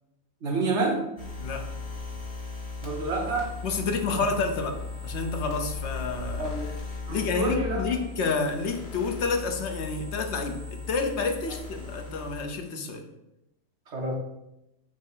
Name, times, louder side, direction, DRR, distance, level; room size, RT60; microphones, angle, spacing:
voice 1, 0.4-1.0 2.8-3.5 4.1-4.3 6.4-6.7 7.1-7.9 13.9-14.1, right 3 dB, 60° right, 1 dB, 1.4 m, -28 dB
sound 1, 1.2-12.4, left 3 dB, 25° left, 1.7 m, -37 dB
voice 2, 3.6-6.5 7.1-13.0, left 4 dB, 60° left, 5 dB, 1.0 m, -29 dB
6.4 x 2.9 x 5.5 m, 0.88 s
omnidirectional pair, 1.4 m